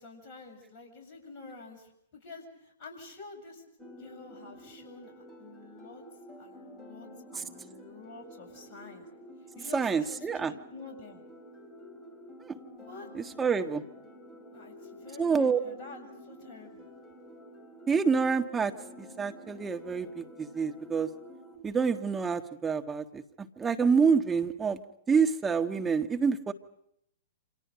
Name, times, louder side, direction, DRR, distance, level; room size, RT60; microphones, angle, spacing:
voice 1, 0.0-3.6 4.0-6.0 6.4-9.1 9.5-11.2 12.8-13.1 14.5-16.9, left 3 dB, 40° left, 2 dB, 7.8 m, -49 dB
sound 1, 3.8-21.6, equal, 15° left, 4.5 m, -50 dB
voice 2, 9.7-10.5 12.4-12.5 13.1-13.8 15.2-15.6 17.9-18.7 19.0-21.1 21.6-23.2 23.6-24.8 25.1-26.5, right 5 dB, 15° right, 5 dB, 1.6 m, -27 dB
29.0 x 26.5 x 5.3 m, 0.76 s
figure-of-eight pair, 105°, 0 cm